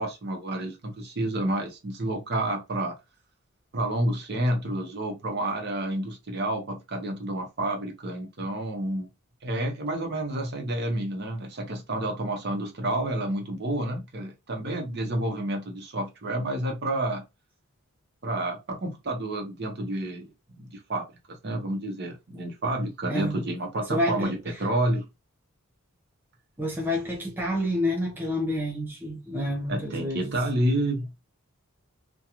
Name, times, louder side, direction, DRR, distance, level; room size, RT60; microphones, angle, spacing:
voice 1, 0.0-3.0 3.7-9.1 9.4-17.2 18.2-25.0 29.7-31.2, right 1 dB, 50° right, 0.7 m, -29 dB
voice 2, 23.1-23.4 23.9-24.4 26.6-30.4, left 1 dB, 10° right, 0.6 m, -29 dB
2.4 x 2.2 x 2.9 m
head